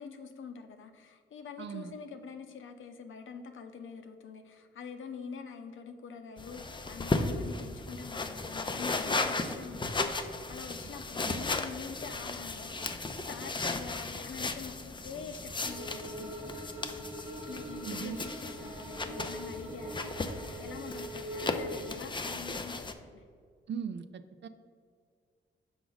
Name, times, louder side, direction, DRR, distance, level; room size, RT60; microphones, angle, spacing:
voice 1, 0.0-16.6 17.5-23.2, left 5 dB, 75° left, 6 dB, 0.7 m, -45 dB
voice 2, 1.6-1.9 11.2-11.5 17.8-18.2 23.7-24.5, right 7 dB, 60° right, 11 dB, 0.5 m, -39 dB
sound 1, 6.4-22.9, left 3 dB, 25° left, 0.5 m, -36 dB
sound 2, 15.6-22.0, right 1 dB, 5° right, 0.8 m, -42 dB
6.1 x 4.7 x 3.9 m, 2.1 s
cardioid pair, 75°, 21 cm